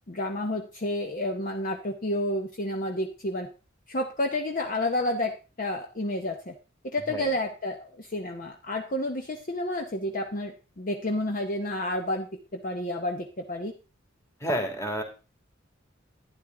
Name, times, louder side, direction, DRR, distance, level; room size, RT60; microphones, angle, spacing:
voice 1, 0.1-3.5 3.9-6.5 6.8-13.7, left 1 dB, 40° left, 4 dB, 0.9 m, -30 dB
voice 2, 14.4-15.0, equal, 15° left, 3 dB, 2.3 m, -30 dB
12.0 x 9.7 x 3.8 m, 0.34 s
head